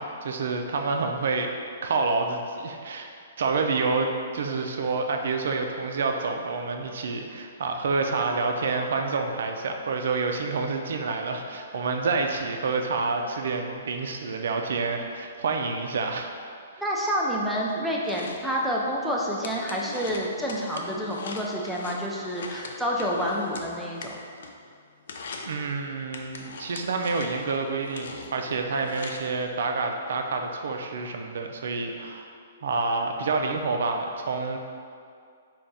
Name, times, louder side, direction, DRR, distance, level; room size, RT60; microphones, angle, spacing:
voice 1, 0.0-1.5 1.8-3.1 3.4-16.3 25.4-32.3 32.6-34.6, right 4 dB, 70° right, 4 dB, 0.3 m, -28 dB
voice 2, 16.8-24.2, equal, ahead, -4 dB, 0.4 m, -28 dB
sound 1, 17.7-24.7 25.0-25.6 26.1-29.2, left 3 dB, 70° left, 0.4 m, -41 dB
3.4 x 2.3 x 3.9 m, 2.3 s
hypercardioid pair, 140°, 0 cm